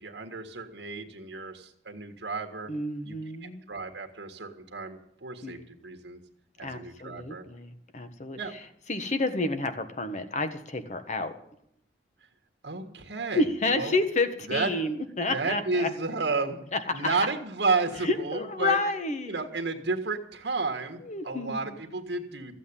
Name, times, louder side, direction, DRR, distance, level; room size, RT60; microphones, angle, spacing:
voice 1, 0.0-2.7 3.0-3.2 3.4-6.2 6.6-7.4 8.4-8.5 12.6-13.4 13.7-13.9 14.5-14.7 15.3-16.6 16.9-18.8 19.2-22.6, right 3 dB, 80° right, 4 dB, 1.7 m, -32 dB
voice 2, 2.7-3.6 5.4-5.6 6.6-11.3 13.3-15.9 16.7-17.2 18.0-19.5 21.0-21.7, left 2 dB, 45° left, 8 dB, 1.4 m, -30 dB
14.5 x 8.4 x 9.9 m, 0.72 s
head